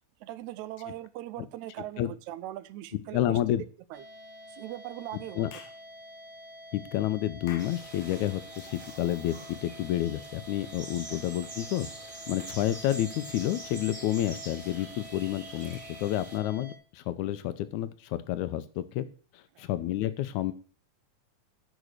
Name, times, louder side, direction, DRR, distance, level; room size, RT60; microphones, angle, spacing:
voice 1, 0.2-3.4 3.9-4.0 4.5-5.5 11.1-11.2 19.6-19.7, right 14 dB, 85° right, 15 dB, 2.0 m, -40 dB
voice 2, 3.1-3.6 5.4-5.5 6.7-11.9 12.3-19.1 19.6-20.5, left 13 dB, 85° left, 13 dB, 2.1 m, -30 dB
sound 1, 3.9-16.8, left 1 dB, 40° right, 1.1 m, -48 dB
Clapping / Chirp tweet, 5.5-5.8 7.5-7.8, left 7 dB, 70° left, 2.0 m, -46 dB
sound 2, 7.6-16.4, right 2 dB, 20° right, 1.4 m, -46 dB
9.4 x 5.1 x 6.4 m, 0.43 s
omnidirectional pair, 3.3 m